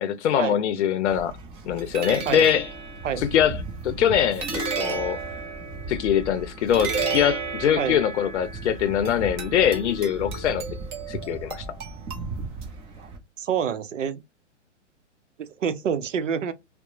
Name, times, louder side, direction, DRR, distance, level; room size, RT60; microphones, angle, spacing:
voice 1, 0.0-1.3 1.7-2.7 3.2-3.6 3.8-5.2 5.9-10.6 11.1-11.6, left 9 dB, 70° left, 0.6 m, -23 dB
sound 1, 1.1-13.2, right 4 dB, 15° right, 0.5 m, -33 dB
voice 2, 13.4-14.2 15.4-16.5, right 7 dB, 90° right, 0.6 m, -27 dB
2.8 x 2.0 x 2.3 m
hypercardioid pair, 130°, 36 cm